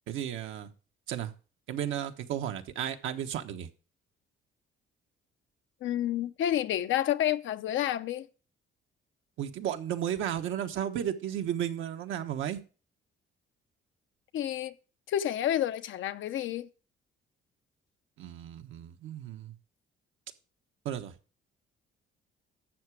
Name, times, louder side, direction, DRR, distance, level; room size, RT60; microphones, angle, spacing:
voice 1, 0.1-0.7 1.1-1.3 1.7-3.7 9.4-12.6 18.2-19.5 20.8-21.1, right 10 dB, 80° right, 1.2 m, -34 dB
voice 2, 5.8-8.3 14.3-14.7 15.1-16.7, left 11 dB, 75° left, 0.8 m, -29 dB
12.0 x 7.6 x 4.8 m
cardioid pair, 90°, 20 cm